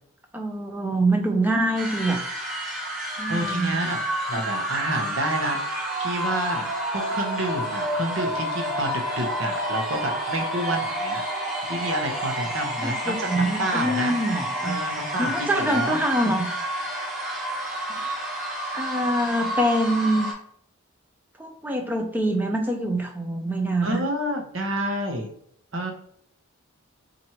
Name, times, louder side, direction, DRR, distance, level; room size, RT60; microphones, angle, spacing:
voice 1, 0.3-2.2 3.2-4.0 4.3-4.4 12.8-14.8 15.2-16.5 17.9-18.4 18.7-20.3 21.4-24.0, right 1 dB, 10° right, 3 dB, 0.4 m, -25 dB
sound 1, 1.8-20.3, right 1 dB, 35° right, 1.1 m, -29 dB
voice 2, 3.3-4.0 4.3-11.2 11.6-14.2 14.6-16.3 23.8-25.3 25.7-25.9, right 1 dB, 65° right, 2 dB, 0.9 m, -29 dB
3.0 x 2.5 x 4.2 m, 0.66 s
head